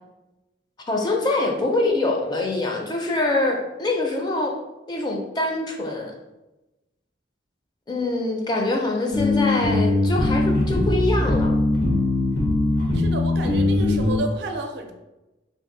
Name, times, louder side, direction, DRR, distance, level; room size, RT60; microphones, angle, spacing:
voice 1, 0.9-4.6 4.9-6.1 7.9-11.5, left 2 dB, 25° left, 1 dB, 0.4 m, -24 dB
sound 1, 9.1-14.2, left 2 dB, 85° left, 1.1 m, -21 dB
voice 2, 12.9-14.9, right 2 dB, 65° right, 4 dB, 0.4 m, -31 dB
2.6 x 2.6 x 3.7 m, 1.0 s
head